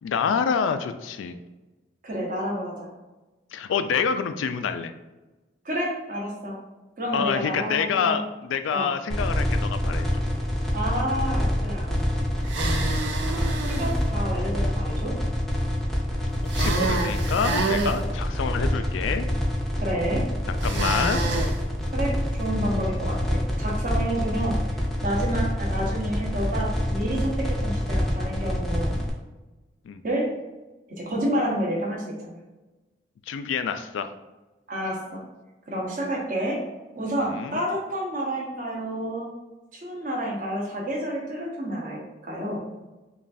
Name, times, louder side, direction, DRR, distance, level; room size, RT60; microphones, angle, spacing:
voice 1, 0.0-1.4 3.5-4.9 7.1-10.1 16.5-19.3 20.5-21.2 29.8-30.0 33.3-34.1 37.3-37.6, left 6 dB, 85° left, 9 dB, 0.3 m, -27 dB
voice 2, 2.0-2.9 5.6-6.6 7.0-8.2 8.7-8.9 10.7-12.2 13.2-15.2 19.8-20.3 21.9-24.6 25.0-29.0 30.0-30.3 30.9-32.4 34.7-35.2 35.7-36.6 36.9-39.3 39.7-42.6, equal, 45° right, -2 dB, 0.9 m, -29 dB
sound 1, 9.1-29.1, left 1 dB, ahead, 0.5 m, -26 dB
sound 2, 12.5-14.0 16.5-18.0 20.6-21.5, right 3 dB, 70° right, 0.5 m, -28 dB
5.1 x 2.3 x 2.6 m, 1.1 s
head